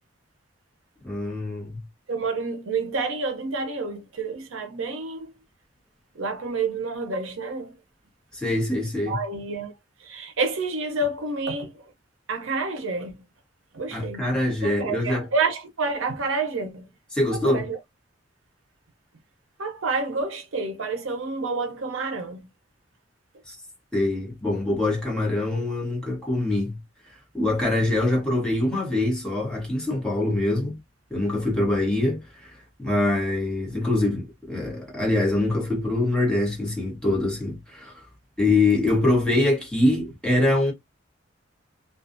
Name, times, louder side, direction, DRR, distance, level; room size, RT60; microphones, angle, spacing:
voice 1, 1.0-1.8 8.3-9.2 13.9-15.3 17.1-17.7 23.5-23.6 23.9-26.8 27.3-30.8 31.1-38.0 38.4-40.7, left 2 dB, 5° left, 1.2 m, -24 dB
voice 2, 2.1-5.3 6.1-7.7 9.1-9.7 10.0-11.9 12.3-13.2 13.7-14.2 14.6-16.9 17.4-17.8 19.6-22.5 25.5-25.7, right 3 dB, 75° right, 0.7 m, -29 dB
2.4 x 2.4 x 2.5 m
head